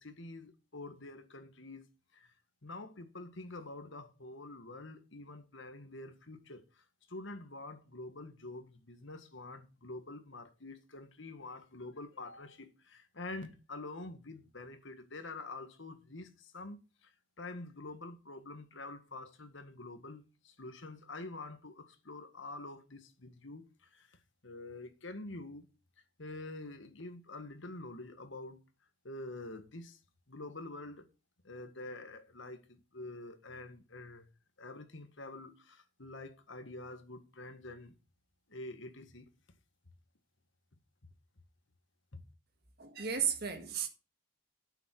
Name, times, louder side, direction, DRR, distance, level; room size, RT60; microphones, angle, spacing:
voice 1, 0.0-1.9 2.1-2.3 2.6-17.1 17.4-24.2 24.4-25.7 26.2-28.6 29.0-30.0 30.3-31.1 31.4-34.3 34.6-37.9 38.5-39.3 42.1-42.2, left 2 dB, 65° left, 1.8 m, -47 dB
voice 2, 42.8-43.9, right 8 dB, 50° right, 1.7 m, -34 dB
9.0 x 7.2 x 6.0 m
head